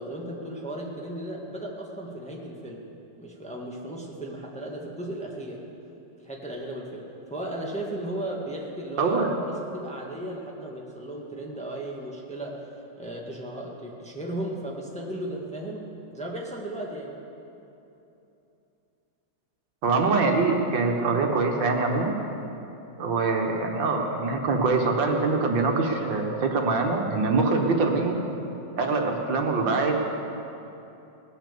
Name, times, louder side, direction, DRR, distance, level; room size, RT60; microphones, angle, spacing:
voice 1, 0.0-2.9 3.2-5.6 6.2-9.2 9.5-17.2, right 1 dB, 5° left, -2 dB, 1.6 m, -36 dB
voice 2, 9.0-9.4 19.8-22.1 23.0-28.2 28.8-29.9, right 3 dB, 75° right, 2 dB, 2.1 m, -24 dB
18.5 x 10.0 x 6.9 m, 2.9 s
omnidirectional pair, 2.0 m